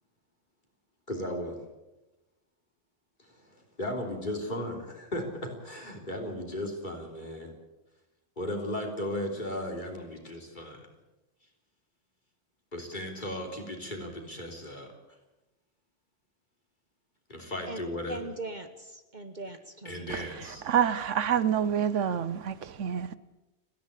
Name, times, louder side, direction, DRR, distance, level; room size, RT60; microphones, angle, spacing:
voice 1, 1.1-1.6 3.2-7.5 8.4-10.9 12.7-14.9 17.3-18.2 19.8-20.6, left 1 dB, 40° left, 3.7 m, -36 dB
voice 2, 18.1-20.2, right 2 dB, 40° right, 1.2 m, -40 dB
voice 3, 20.1-23.2, right 9 dB, 80° right, 1.2 m, -28 dB
30.0 x 10.5 x 8.3 m
omnidirectional pair, 1.3 m